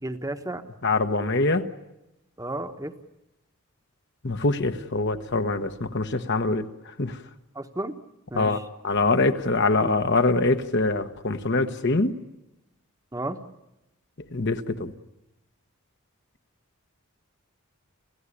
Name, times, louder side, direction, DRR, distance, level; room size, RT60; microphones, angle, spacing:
voice 1, 0.0-0.6 2.4-2.9 7.5-7.9 8.3-8.6 13.1-13.4, right 1 dB, 15° right, 7 dB, 1.1 m, -32 dB
voice 2, 0.8-1.7 4.2-6.7 7.0-7.2 8.3-8.6 8.8-12.1 14.3-14.9, left 3 dB, 50° left, 8 dB, 1.2 m, -24 dB
29.0 x 16.0 x 9.9 m, 0.93 s
head